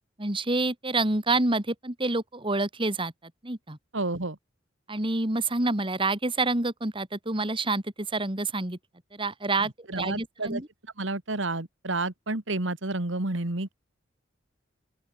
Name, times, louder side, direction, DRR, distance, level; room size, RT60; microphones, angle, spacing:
voice 1, 0.2-3.1 3.4-3.8 4.9-8.8 9.1-9.7 10.0-10.7, right 2 dB, 25° right, 2.3 m, -27 dB
voice 2, 3.9-4.4 9.6-10.6 11.0-13.7, right 2 dB, 65° right, 2.1 m, -30 dB
open air
head